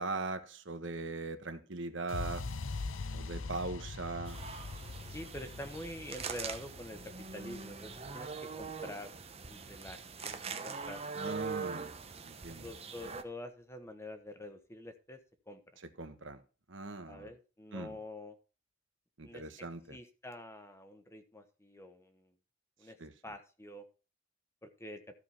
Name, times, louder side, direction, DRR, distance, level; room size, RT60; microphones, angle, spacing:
voice 1, 0.0-2.4 3.1-4.4 11.1-11.9 12.2-12.7 16.0-16.4 16.7-17.3 17.7-18.0 19.2-20.0 23.0-23.1, right 3 dB, 70° right, 1.3 m, -40 dB
sound 1, 2.1-10.0, left 3 dB, 85° left, 0.8 m, -43 dB
sound 2, 4.3-13.2, right 5 dB, 30° right, 1.0 m, -43 dB
voice 2, 5.0-7.0 7.3-8.3 8.6-9.1 9.5-10.0 10.2-11.4 12.6-15.2 15.5-15.6 17.1-18.4 19.2-19.5 19.9-22.3 22.8-23.0 23.2-23.8 24.6-25.0, left 1 dB, 15° left, 1.2 m, -46 dB
14.0 x 5.0 x 5.7 m
head